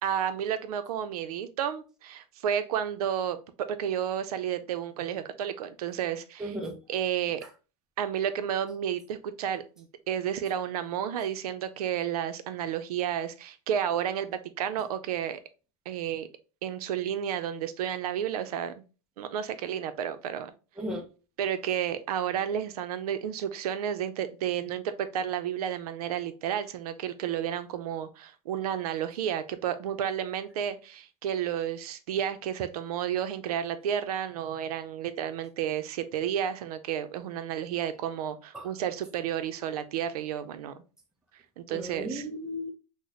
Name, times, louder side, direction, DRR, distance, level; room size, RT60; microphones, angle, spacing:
voice 1, 0.0-3.4 3.7-6.5 6.9-7.4 8.0-15.4 15.9-16.3 16.6-18.7 19.2-20.5 21.4-40.7 41.6-42.2, right 9 dB, 80° right, 0.5 m, -31 dB
voice 2, 6.4-6.8 20.8-21.1 38.5-38.7 41.7-42.7, equal, 5° right, 0.4 m, -35 dB
3.9 x 2.1 x 3.0 m
supercardioid pair, 155°, 19 cm